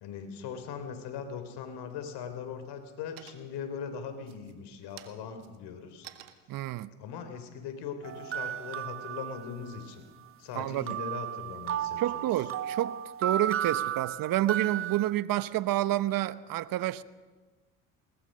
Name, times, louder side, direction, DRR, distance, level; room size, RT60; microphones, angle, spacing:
voice 1, 0.0-6.1 7.0-10.0 10.4-12.3, left 6 dB, 65° left, 3.3 m, -40 dB
sound 1, 3.2-3.7 4.2-8.6, right 14 dB, 75° right, 1.8 m, -53 dB
voice 2, 6.5-6.9 10.5-11.0 12.0-17.0, right 14 dB, 50° right, 1.0 m, -29 dB
sound 2, 8.0-9.9 10.9-15.1, right 10 dB, 30° right, 0.6 m, -34 dB
22.0 x 19.0 x 6.5 m
supercardioid pair, 80°, 42 cm